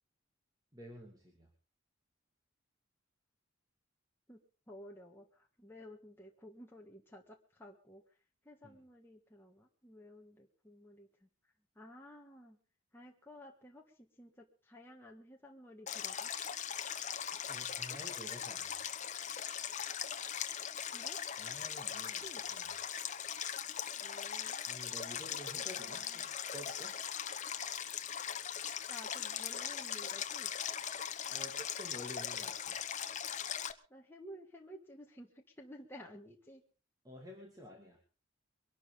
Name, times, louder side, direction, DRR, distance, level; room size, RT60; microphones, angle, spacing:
voice 1, 0.7-1.5 8.6-8.8 17.4-19.0 21.4-22.2 22.5-22.8 24.7-27.0 31.3-32.8 37.0-38.0, equal, 20° right, 0 dB, 2.6 m, -51 dB
voice 2, 4.7-8.2 8.4-11.3 11.8-12.6 12.9-16.3 20.9-21.2 22.2-22.4 23.9-24.6 25.3-26.3 28.9-30.5 33.9-36.6, equal, 10° left, 0 dB, 1.6 m, -54 dB
Stream, 15.9-33.7, left 9 dB, 35° left, 0.9 m, -40 dB
23.5 x 12.0 x 3.8 m, 0.35 s
head